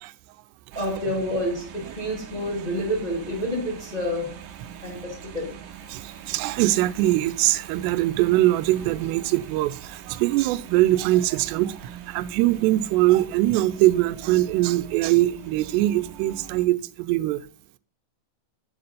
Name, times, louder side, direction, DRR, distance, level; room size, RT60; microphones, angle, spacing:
voice 1, 0.7-4.4 4.8-5.5, equal, 15° left, 1.7 m, -28 dB
sound 1, 0.7-16.7, right 9 dB, 70° right, 2.5 m, -43 dB
voice 2, 5.9-17.4, right 16 dB, 90° right, 2.7 m, -22 dB
7.1 x 6.8 x 5.5 m
omnidirectional pair, 4.8 m